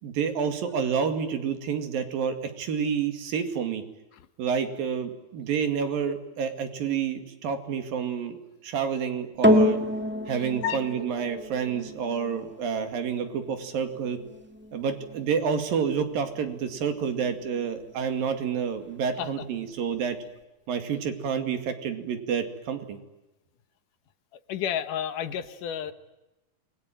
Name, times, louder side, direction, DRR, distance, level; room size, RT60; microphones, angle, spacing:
voice 1, 0.0-3.8 4.4-9.8 10.3-14.2 14.7-20.2 20.7-23.0, right 7 dB, 75° right, 7 dB, 4.0 m, -29 dB
sound 1, 9.4-18.0 18.7-18.8, left 1 dB, 10° right, 0.6 m, -29 dB
voice 2, 24.5-25.9, left 9 dB, 70° left, 11 dB, 2.6 m, -30 dB
29.0 x 22.0 x 9.1 m, 0.99 s
omnidirectional pair, 4.1 m